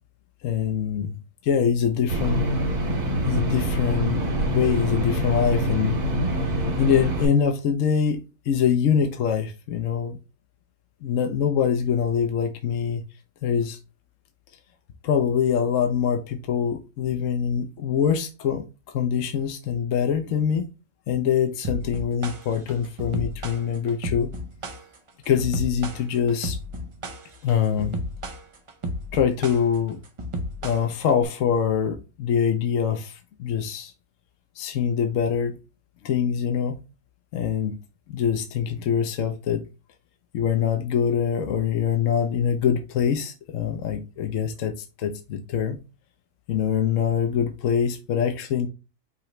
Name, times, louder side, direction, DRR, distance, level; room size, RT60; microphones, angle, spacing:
voice 1, 0.4-1.1 1.4-2.5 3.3-6.0 6.8-10.2 11.0-13.0 13.4-13.8 15.0-18.6 18.9-20.7 21.1-24.3 25.3-26.6 27.4-28.0 29.1-30.0 30.6-33.9 34.6-35.6 36.0-36.8 37.3-37.8 38.1-39.6 40.3-45.8 46.5-48.7, left 7 dB, 65° left, 1.0 m, -24 dB
sound 1, 2.1-7.3, right 1 dB, 75° right, 2.1 m, -25 dB
sound 2, 21.6-31.2, equal, 55° right, 0.3 m, -33 dB
5.7 x 3.0 x 3.1 m
omnidirectional pair, 1.6 m